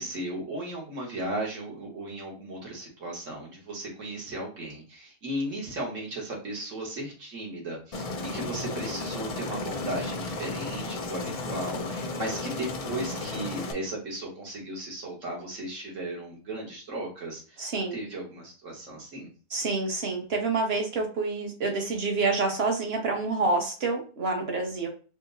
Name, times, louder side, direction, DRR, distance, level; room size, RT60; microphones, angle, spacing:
voice 1, 0.0-19.3, right 1 dB, 75° right, -2 dB, 1.8 m, -36 dB
Aircraft, 7.9-13.7, left 3 dB, 60° left, 0.3 m, -34 dB
voice 2, 17.6-18.0 19.5-24.9, right 3 dB, 55° right, 2 dB, 1.3 m, -28 dB
4.3 x 2.1 x 4.0 m, 0.37 s
omnidirectional pair, 1.3 m